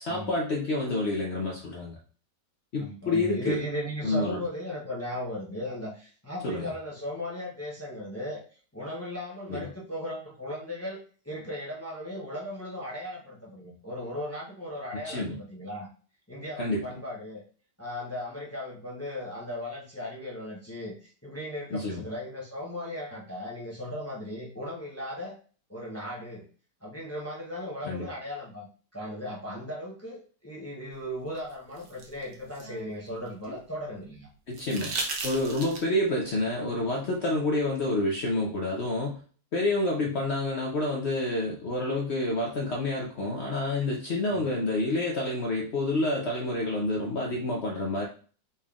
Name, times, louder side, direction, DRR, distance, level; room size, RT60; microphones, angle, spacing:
voice 1, 0.0-2.0 2.7-3.6 4.0-4.4 6.4-6.7 9.5-9.7 15.0-15.4 16.6-16.9 21.7-22.0 27.8-28.1 34.5-34.9 35.2-39.2 39.5-48.0, left 2 dB, 60° left, -1 dB, 0.7 m, -28 dB
voice 2, 2.8-8.4 8.7-15.9 16.3-17.4 17.8-25.3 25.7-26.5 26.8-28.7 28.9-34.3 40.1-40.2 44.3-44.6, left 1 dB, 20° left, -4 dB, 0.4 m, -37 dB
sound 1, 31.4-33.6 34.5-36.1 37.8-37.9, right 3 dB, 65° right, 1.2 m, -36 dB
4.1 x 3.5 x 2.4 m, 0.41 s
omnidirectional pair, 1.9 m